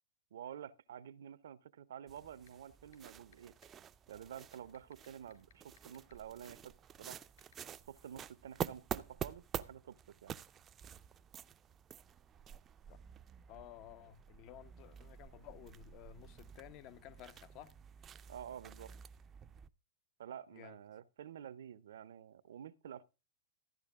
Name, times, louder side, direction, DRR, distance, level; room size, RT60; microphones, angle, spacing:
voice 1, 0.3-3.5 4.1-6.7 7.0-7.2 7.9-10.3 18.3-18.9 20.2-23.0, right 9 dB, 70° right, 0.7 m, -50 dB
sound 1, 2.1-19.7, right 8 dB, 25° right, 0.5 m, -49 dB
sound 2, 2.5-2.6 2.9-3.3 3.6-3.7 4.4-6.1 6.4-6.5 7.4-7.5, left 9 dB, 75° left, 4.3 m, -61 dB
voice 2, 13.5-17.7 20.5-20.8, left 12 dB, 45° left, 0.8 m, -54 dB
13.5 x 10.0 x 3.6 m
hypercardioid pair, 115°, 0 cm